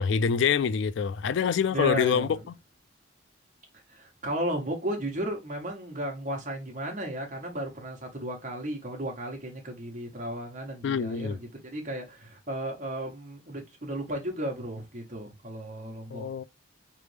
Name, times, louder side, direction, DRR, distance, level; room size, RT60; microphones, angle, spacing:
voice 1, 0.0-2.5 10.8-11.4 16.1-16.4, left 6 dB, 70° left, 0.3 m, -26 dB
voice 2, 1.7-2.4 3.9-16.3, right 1 dB, 40° right, 1.3 m, -34 dB
4.2 x 3.4 x 3.3 m
head